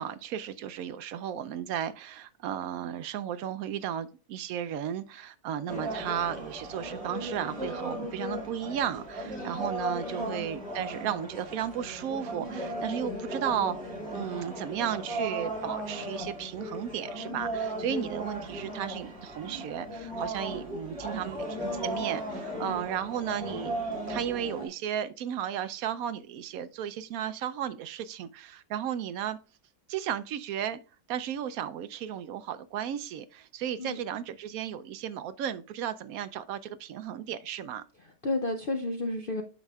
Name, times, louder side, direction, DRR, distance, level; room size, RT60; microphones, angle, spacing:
voice 1, 0.0-29.4 29.9-30.8 31.1-37.8, right 9 dB, 70° right, 0.9 m, -34 dB
sound 1, 5.7-24.7, right 1 dB, 40° right, 2.6 m, -36 dB
voice 2, 38.0-39.4, left 2 dB, 70° left, 0.5 m, -32 dB
9.6 x 6.0 x 2.3 m
omnidirectional pair, 1.8 m